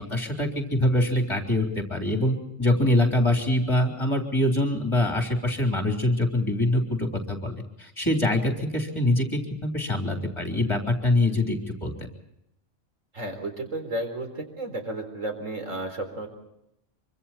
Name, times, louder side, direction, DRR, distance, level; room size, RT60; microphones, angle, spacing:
voice 1, 0.0-12.1, left 1 dB, 20° left, 2 dB, 3.6 m, -24 dB
voice 2, 13.1-16.3, right 1 dB, 90° right, 4 dB, 4.5 m, -33 dB
25.5 x 25.0 x 4.3 m, 0.81 s
omnidirectional pair, 1.3 m